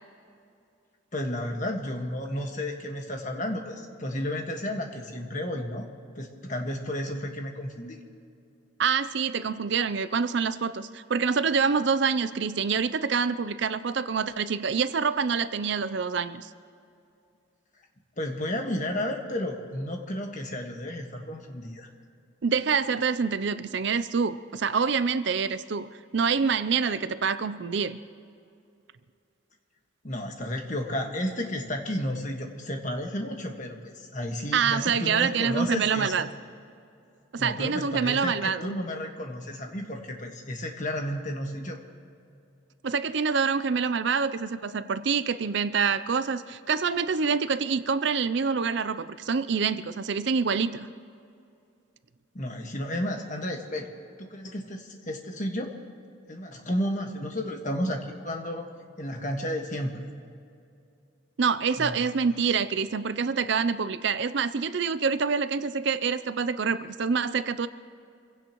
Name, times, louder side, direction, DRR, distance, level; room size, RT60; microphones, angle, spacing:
voice 1, 1.1-5.9 6.2-8.0 18.2-21.9 30.0-36.2 37.4-41.8 52.3-53.9 54.2-55.7 56.3-58.7 59.0-59.9 61.8-62.0, left 1 dB, 40° left, 2 dB, 1.5 m, -32 dB
voice 2, 8.8-16.5 22.4-25.9 26.1-28.0 34.5-36.3 37.3-38.8 42.8-50.9 61.4-67.7, right 5 dB, 55° right, 13 dB, 0.5 m, -26 dB
26.5 x 16.5 x 3.1 m, 2.5 s
head